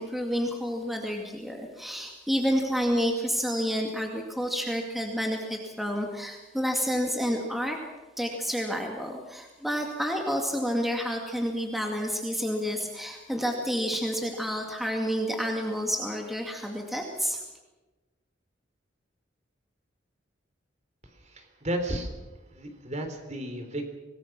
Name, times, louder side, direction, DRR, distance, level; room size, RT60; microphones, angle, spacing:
voice 1, 0.0-7.8 8.2-17.4, equal, ahead, 1 dB, 2.2 m, -29 dB
voice 2, 21.2-22.1 22.5-23.8, right 1 dB, 40° right, 5 dB, 3.6 m, -33 dB
26.0 x 19.0 x 6.1 m, 1.2 s
head